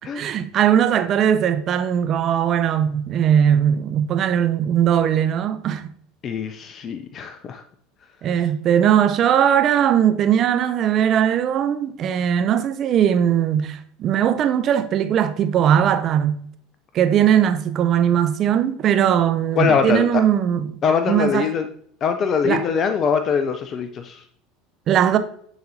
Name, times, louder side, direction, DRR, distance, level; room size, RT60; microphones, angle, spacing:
voice 1, 0.1-5.9 8.2-16.4 16.9-20.8 21.1-21.5 22.4-22.7 24.9-25.2, right 9 dB, 45° right, 0.5 m, -19 dB
voice 2, 6.2-7.6 19.6-20.2 20.8-21.7 22.0-24.2, left 6 dB, 40° left, 0.4 m, -22 dB
10.5 x 4.0 x 2.7 m
hypercardioid pair, 75°, 0 cm